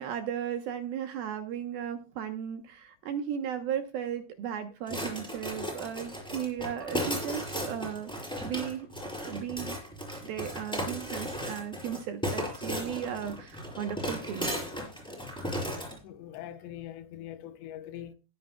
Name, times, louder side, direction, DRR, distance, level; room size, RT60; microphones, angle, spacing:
voice 1, 0.0-8.9 9.2-9.7 10.2-14.5, right 9 dB, 70° right, 2.5 m, -36 dB
sound 1, 4.9-16.0, equal, ahead, 4.8 m, -35 dB
voice 2, 16.0-18.2, left 11 dB, 80° left, 3.0 m, -42 dB
19.5 x 9.3 x 2.3 m
omnidirectional pair, 5.3 m